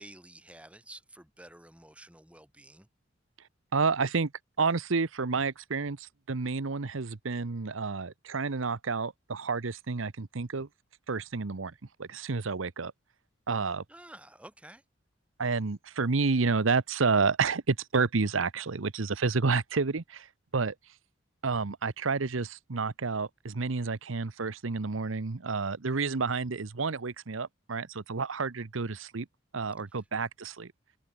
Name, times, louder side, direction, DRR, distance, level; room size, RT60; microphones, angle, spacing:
voice 1, 0.0-2.9 13.9-14.8 29.9-30.1, right 1 dB, 5° right, 3.3 m, -51 dB
voice 2, 3.7-4.3 4.6-10.7 11.1-11.7 12.0-12.9 13.5-13.8 15.4-20.3 20.5-20.7 21.4-29.3 29.5-30.7, right 4 dB, 85° right, 0.9 m, -30 dB
head